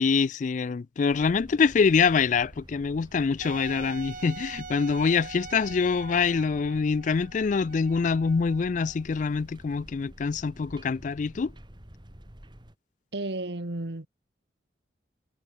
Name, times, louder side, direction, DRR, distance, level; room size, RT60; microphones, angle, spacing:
voice 1, 0.0-11.5, left 5 dB, 45° left, 0.3 m, -25 dB
sound 1, 1.1-12.8, equal, 25° right, 2.3 m, -49 dB
Wind instrument woodwind instrument, 3.4-9.0, right 4 dB, 45° right, 2.0 m, -43 dB
voice 2, 13.1-14.1, right 2 dB, 70° right, 1.5 m, -32 dB
head